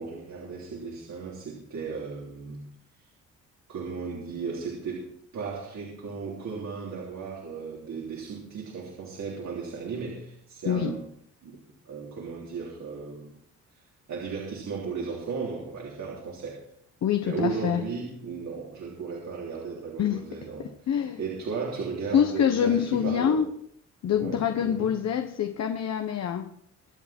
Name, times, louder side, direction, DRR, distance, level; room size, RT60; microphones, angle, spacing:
voice 1, 0.0-2.7 3.7-11.1 11.4-11.6 11.9-13.4 14.1-16.7 17.2-23.4 24.0-25.0, right 5 dB, 65° right, 3.5 m, -35 dB
voice 2, 17.0-17.8 20.0-20.3 20.6-21.2 22.1-23.5 24.0-26.5, left 8 dB, 60° left, 1.2 m, -26 dB
24.0 x 8.0 x 4.5 m
cardioid pair, 90°, 30 cm